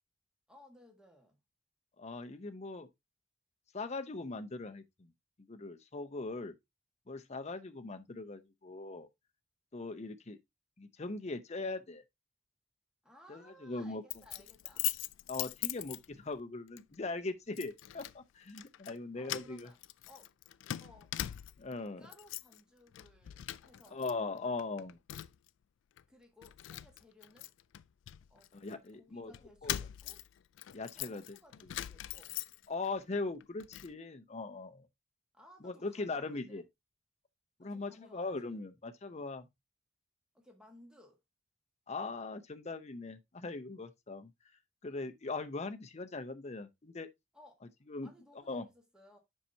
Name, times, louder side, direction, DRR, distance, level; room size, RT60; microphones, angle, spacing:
voice 1, 0.5-1.4 13.0-14.9 19.1-19.8 20.1-20.3 20.8-21.1 21.7-24.1 24.4-24.5 26.1-27.5 28.3-28.5 28.9-30.2 30.9-32.4 35.3-36.6 37.6-38.6 40.3-41.2 47.3-47.6 48.0-49.2, left 1 dB, 5° right, 1.5 m, -60 dB
voice 2, 2.0-2.9 3.7-5.1 5.5-6.5 7.1-9.1 9.7-10.4 10.8-12.0 13.3-14.0 15.3-19.7 21.6-22.1 23.9-25.0 28.5-29.3 29.6-29.7 30.7-31.4 32.7-34.9 35.6-36.6 37.6-39.5 41.9-44.3 44.8-47.1 47.9-48.1 48.5-48.7, left 3 dB, 35° left, 0.6 m, -40 dB
Keys jangling, 14.1-16.4 16.8-17.0 17.6-18.2 18.5-19.0 19.2-21.7 22.1-22.6 22.9-24.1 24.4-25.5 26.0-26.1 26.4-28.8 29.3-32.9 33.3-33.9, left 14 dB, 65° left, 0.3 m, -41 dB
7.3 x 5.6 x 2.7 m
head